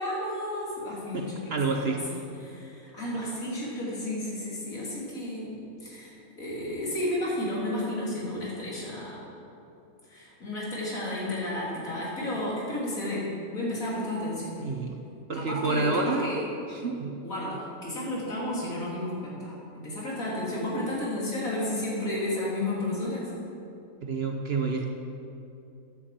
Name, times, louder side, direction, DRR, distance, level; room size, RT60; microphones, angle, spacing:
voice 1, 0.0-9.2 10.1-14.6 15.3-16.4 17.2-23.4, left 1 dB, 65° left, -6 dB, 3.5 m, -32 dB
voice 2, 1.5-2.0 14.6-15.0 15.3-16.3 16.7-17.1 24.0-24.9, right 3 dB, 50° right, 2 dB, 0.9 m, -28 dB
9.7 x 8.5 x 7.5 m, 2.7 s
omnidirectional pair, 1.5 m